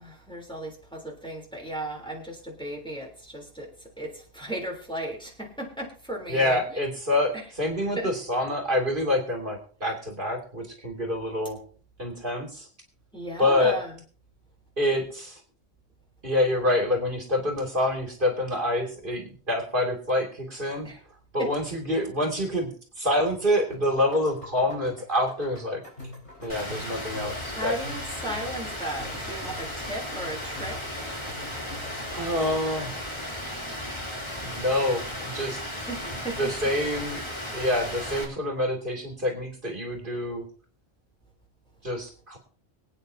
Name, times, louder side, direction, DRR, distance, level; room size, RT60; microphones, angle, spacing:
voice 1, 0.0-6.8 8.0-8.1 13.1-13.9 20.8-21.0 21.4-21.5 27.5-31.1 35.9-36.4, right 1 dB, 5° left, 3.4 m, -36 dB
voice 2, 6.3-11.6 12.0-12.7 13.4-13.8 14.8-15.4 16.2-20.9 21.3-25.8 26.4-27.8 32.1-33.0 34.4-35.6 36.1-37.2 37.5-40.4 41.8-42.4, left 1 dB, 50° right, 2.8 m, -27 dB
sound 1, 23.3-32.8, left 2 dB, 75° left, 4.6 m, -45 dB
Rain, 26.5-38.2, left 1 dB, 25° left, 3.1 m, -35 dB
25.0 x 9.1 x 2.7 m
omnidirectional pair, 1.1 m